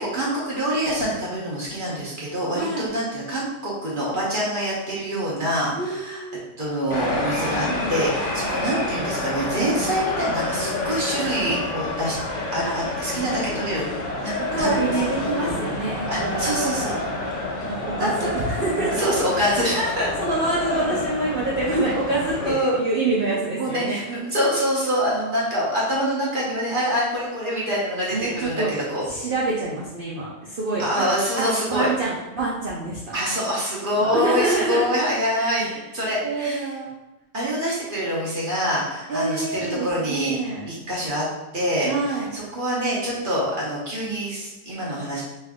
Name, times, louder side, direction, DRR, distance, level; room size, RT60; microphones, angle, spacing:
voice 1, 0.0-6.2 6.6-12.2 12.5-13.8 14.2-15.0 16.1-17.0 18.0-18.1 18.9-20.1 22.4-22.8 23.6-29.0 30.8-31.9 33.1-36.7 37.3-40.4 40.7-41.2 41.5-41.9 42.3-45.2, equal, 40° right, -6 dB, 0.9 m, -25 dB
voice 2, 2.5-2.9 5.7-6.4 12.6-12.7 14.5-16.7 17.6-19.1 19.4-19.9 20.2-24.0 28.1-28.7 29.0-31.0 31.4-33.0 34.0-34.9 35.3-35.7 36.2-37.0 39.1-40.6 41.8-42.3, right 3 dB, 80° right, -7 dB, 0.4 m, -26 dB
sound 1, 6.9-22.5, left 2 dB, 55° left, 1.0 m, -28 dB
3.3 x 2.6 x 3.5 m, 1.0 s
omnidirectional pair, 1.8 m